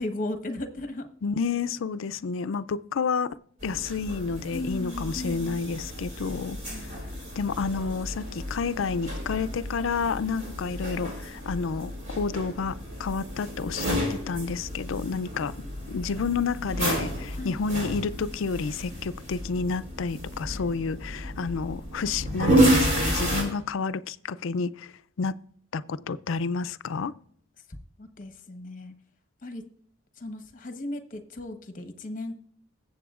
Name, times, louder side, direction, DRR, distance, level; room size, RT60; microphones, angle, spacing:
voice 1, 0.0-1.1 4.5-5.7 6.7-7.0 15.3-15.4 17.3-17.6 28.0-28.9 29.4-29.6 30.2-32.5, left 1 dB, 40° left, 1.1 m, -36 dB
voice 2, 1.2-3.3 3.6-7.0 7.4-15.5 15.9-24.9 25.2-25.3 25.7-27.1, left 5 dB, 70° left, 0.4 m, -30 dB
sound 1, 3.6-23.4, equal, 40° right, 4.4 m, -30 dB
22.0 x 7.7 x 2.4 m
head